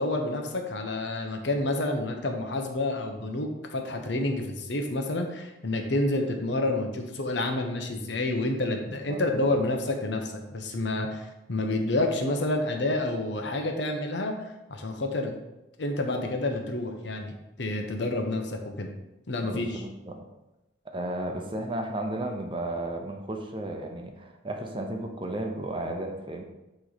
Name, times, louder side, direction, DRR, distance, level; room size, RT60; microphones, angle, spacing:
voice 1, 0.0-14.3 14.7-15.3 15.8-18.9 19.3-19.8, left 2 dB, 70° left, 4 dB, 0.9 m, -29 dB
voice 2, 8.9-9.5 19.4-20.2 20.9-26.4, right 1 dB, 25° right, 3 dB, 0.7 m, -34 dB
9.1 x 3.2 x 4.0 m, 0.97 s
head